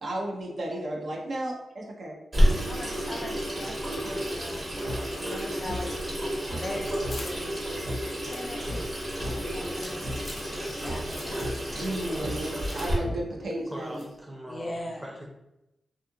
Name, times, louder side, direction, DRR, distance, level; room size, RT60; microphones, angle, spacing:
voice 1, 0.0-2.2 2.5-2.7 5.2-5.3 11.7-14.0, right 1 dB, 65° right, -1 dB, 0.6 m, -34 dB
Water tap faucet / Sink (filling or washing), 2.3-12.9, equal, 40° right, 1.0 m, -30 dB
voice 2, 2.7-6.1 6.5-7.5 7.8-8.9 9.2-12.2 12.8-12.9 14.5-15.0, left 1 dB, 25° left, 1 dB, 0.4 m, -41 dB
sound 1, 4.9-5.0 5.7-5.8 6.5-6.6 7.0-7.2 7.9-8.0 8.7-8.8 9.2-9.4 10.0-10.2 10.9-11.0 11.4-11.5 12.2-12.4 13.0-13.2, equal, 85° right, 0.9 m, -34 dB
sound 2, 7.1-10.8 11.1-11.6 11.9-12.9 13.2-13.3 13.9-14.2, left 2 dB, 70° left, 0.6 m, -46 dB
voice 3, 13.7-15.3, equal, 10° right, -1 dB, 0.6 m, -41 dB
2.7 x 2.4 x 2.5 m, 0.88 s
wide cardioid pair, 100°, 0 cm